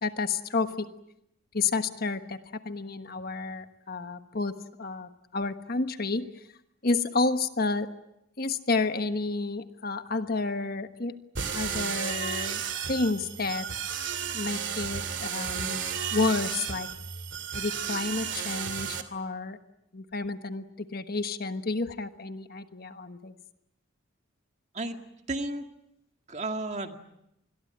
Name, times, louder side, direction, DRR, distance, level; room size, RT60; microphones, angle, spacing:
voice 1, 0.0-0.8 1.5-2.4 2.6-4.5 4.8-6.3 6.8-7.9 8.4-11.2 11.5-12.6 12.9-13.7 14.3-15.9 16.1-16.9 17.5-19.6 19.9-23.3, left 3 dB, 50° left, 9 dB, 1.3 m, -30 dB
sound 1, 11.4-19.0, right 7 dB, 60° right, 2.6 m, -33 dB
voice 2, 25.3-25.6 26.3-27.0, right 2 dB, 35° right, 6 dB, 2.0 m, -32 dB
26.5 x 21.5 x 8.8 m, 0.83 s
head